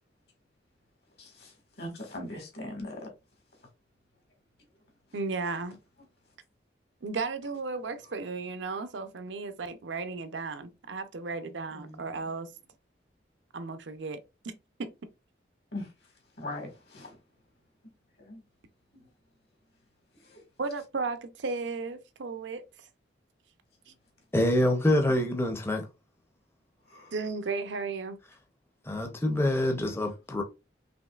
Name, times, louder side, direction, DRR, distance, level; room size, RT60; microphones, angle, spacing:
voice 1, 1.2-3.1 11.7-12.3 15.7-15.9 16.4-17.2 18.2-18.4 18.9-19.1 20.2-20.4 26.9-27.1, left 1 dB, 60° left, 1.7 m, -41 dB
voice 2, 5.1-5.8 7.0-12.5 13.5-14.2 14.4-14.5 14.8-14.9 20.6-22.9 27.1-28.2, right 4 dB, 80° right, 0.6 m, -34 dB
voice 3, 24.3-25.8 28.9-30.4, left 1 dB, 15° left, 0.6 m, -26 dB
5.2 x 3.0 x 2.3 m
head